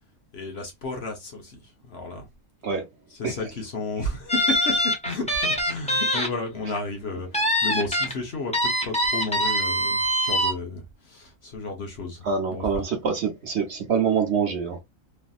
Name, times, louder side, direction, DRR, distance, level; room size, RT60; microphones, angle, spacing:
voice 1, 0.3-2.3 3.1-12.8, left 2 dB, 50° left, 1.0 m, -33 dB
sound 1, 4.3-6.3 6.6-6.8 7.3-8.1 8.5-10.5, equal, 5° left, 0.7 m, -23 dB
voice 2, 12.2-14.8, right 6 dB, 55° right, 0.9 m, -25 dB
3.2 x 2.6 x 2.3 m
omnidirectional pair, 1.5 m